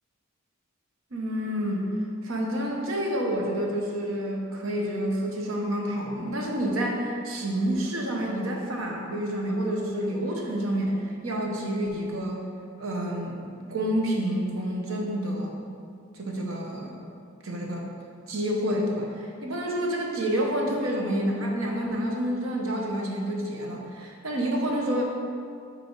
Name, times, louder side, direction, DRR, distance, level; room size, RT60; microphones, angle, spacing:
voice 1, 1.1-1.9 2.2-12.4 12.8-15.6 16.1-16.9 17.4-17.9 18.3-25.0, equal, 75° right, 0 dB, 0.9 m, -28 dB
5.6 x 4.3 x 4.5 m, 2.4 s
head